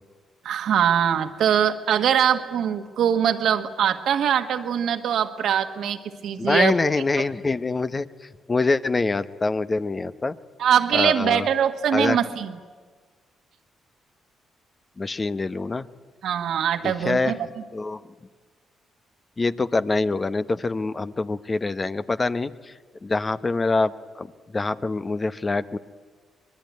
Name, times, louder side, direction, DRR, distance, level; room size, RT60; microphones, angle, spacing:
voice 1, 0.4-6.7 7.2-7.3 10.6-12.6 16.2-17.4, right 9 dB, 70° right, 6 dB, 1.6 m, -22 dB
voice 2, 6.4-10.3 10.9-11.4 11.9-12.2 15.0-15.8 16.8-17.4 17.7-18.0 19.4-22.7 23.0-25.8, left 3 dB, 35° left, 12 dB, 0.9 m, -25 dB
24.5 x 20.5 x 9.5 m, 1.5 s
hypercardioid pair, 50°, 0 cm